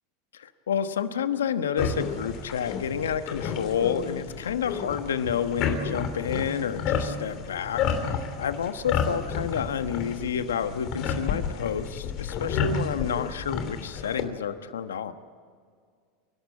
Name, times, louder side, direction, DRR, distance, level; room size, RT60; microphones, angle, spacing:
voice 1, 0.3-7.8 8.4-15.1, left 8 dB, 90° left, 10 dB, 1.1 m, -29 dB
sound 1, 1.8-14.2, left 6 dB, 55° left, 3.0 m, -31 dB
30.0 x 12.5 x 8.6 m, 2.1 s
hypercardioid pair, 100°, 0 cm